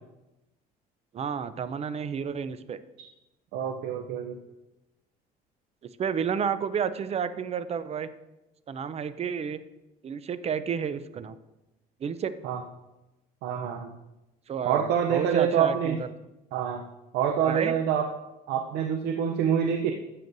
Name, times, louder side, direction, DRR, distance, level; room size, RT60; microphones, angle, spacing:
voice 1, 1.1-2.8 6.0-8.1 8.7-9.6 10.0-11.4 12.0-12.3 14.5-16.1 17.4-17.8, right 7 dB, 40° right, 13 dB, 0.5 m, -31 dB
voice 2, 3.5-4.4 12.4-12.6 13.4-13.9 14.7-16.0 16.5-16.8 17.1-18.1 18.5-19.9, right 8 dB, 90° right, 5 dB, 0.6 m, -26 dB
12.0 x 7.7 x 2.6 m, 0.98 s
cardioid pair, 110°, 17 cm